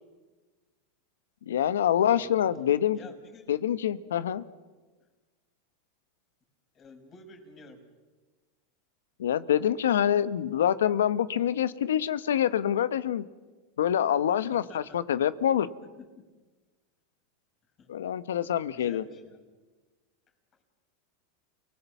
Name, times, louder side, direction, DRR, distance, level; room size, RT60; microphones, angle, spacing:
voice 1, 1.5-3.0 3.5-4.4 9.2-13.2 13.8-15.7 17.9-19.0, left 10 dB, 90° left, 15 dB, 1.0 m, -26 dB
voice 2, 2.1-2.5 2.9-3.5 6.7-7.9 14.5-15.0 15.8-16.3 17.8-17.9 18.6-19.4, left 3 dB, 35° left, 4 dB, 5.5 m, -50 dB
29.5 x 19.5 x 7.3 m, 1.3 s
hypercardioid pair, 110°, 0 cm